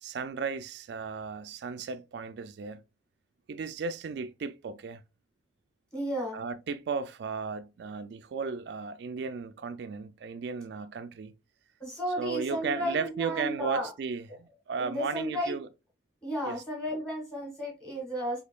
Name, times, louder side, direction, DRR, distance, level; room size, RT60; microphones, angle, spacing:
voice 1, 0.0-2.8 3.5-5.0 6.3-11.3 12.2-15.7 16.4-16.6, right 5 dB, 60° right, 0.3 m, -35 dB
voice 2, 5.9-6.4 11.8-13.9 14.8-15.6 16.2-18.4, equal, 5° left, 1.6 m, -33 dB
4.3 x 2.8 x 2.2 m
head